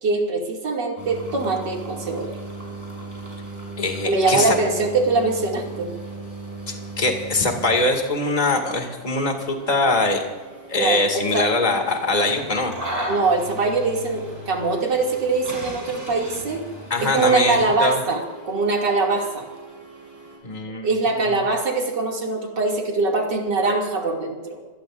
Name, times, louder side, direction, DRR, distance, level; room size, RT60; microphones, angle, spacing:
voice 1, 0.0-2.3 4.0-5.9 10.8-11.5 13.1-16.6 17.0-19.4 20.8-24.6, right 3 dB, 75° right, 0 dB, 3.2 m, -22 dB
sound 1, 1.0-20.4, right 2 dB, 20° right, 7.1 m, -37 dB
voice 2, 3.8-4.6 6.7-10.2 10.7-12.7 16.9-18.0 20.4-20.9, left 2 dB, 25° left, 3 dB, 2.3 m, -22 dB
27.0 x 18.5 x 2.6 m, 1.4 s
omnidirectional pair, 1.9 m